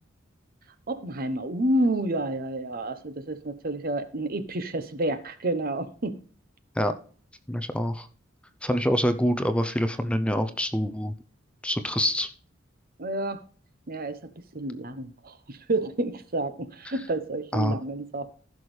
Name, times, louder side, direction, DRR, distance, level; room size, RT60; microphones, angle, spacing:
voice 1, 0.9-6.2 13.0-13.4 13.9-18.3, right 1 dB, 50° right, 1.0 m, -29 dB
voice 2, 7.5-8.1 8.6-11.1 11.6-12.3 17.5-17.8, equal, 5° left, 0.6 m, -25 dB
15.5 x 6.2 x 3.3 m
head